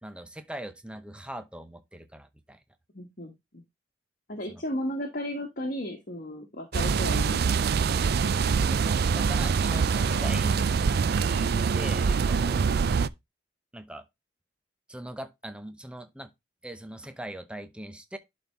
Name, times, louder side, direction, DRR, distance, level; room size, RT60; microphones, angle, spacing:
voice 1, 0.0-2.6 4.5-4.6 8.6-10.5 11.2-12.6 13.7-14.1 14.9-16.3 16.6-18.2, right 1 dB, 5° right, 0.7 m, -41 dB
voice 2, 2.9-3.3 4.3-7.6 8.2-8.7 10.0-10.7, left 1 dB, 50° left, 1.5 m, -35 dB
sound 1, 6.7-13.1, right 5 dB, 55° right, 0.4 m, -24 dB
11.0 x 4.3 x 3.4 m
head